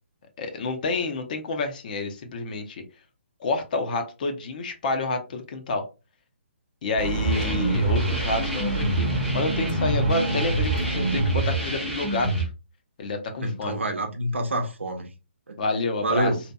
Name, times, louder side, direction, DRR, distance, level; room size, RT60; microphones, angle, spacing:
voice 1, 0.4-2.8 3.4-5.9 6.8-12.5 13.0-13.8 15.6-16.3, left 3 dB, 45° left, 0.6 m, -29 dB
sound 1, 7.0-11.9, right 2 dB, 25° right, 0.8 m, -30 dB
sound 2, 7.2-12.4, right 2 dB, 5° left, 0.7 m, -26 dB
voice 2, 13.4-15.1 15.5-15.6 16.0-16.4, right 1 dB, 80° right, 0.7 m, -27 dB
2.8 x 2.5 x 2.3 m
figure-of-eight pair, 135°, 7 cm